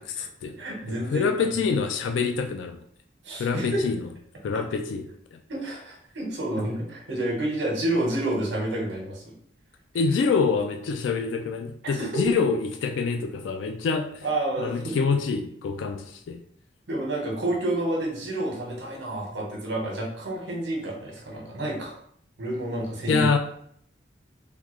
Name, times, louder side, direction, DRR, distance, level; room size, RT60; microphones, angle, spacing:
voice 1, 0.0-0.6 0.9-2.8 3.4-4.0 4.4-5.4 9.9-14.3 14.6-16.4 23.1-23.4, left 5 dB, 75° left, 5 dB, 0.3 m, -26 dB
voice 2, 0.6-1.5 3.2-3.9 5.5-9.3 11.8-12.2 14.2-14.9 16.9-21.9 22.4-23.3, right 1 dB, 70° right, -2 dB, 1.0 m, -29 dB
3.6 x 2.2 x 3.1 m, 0.65 s
head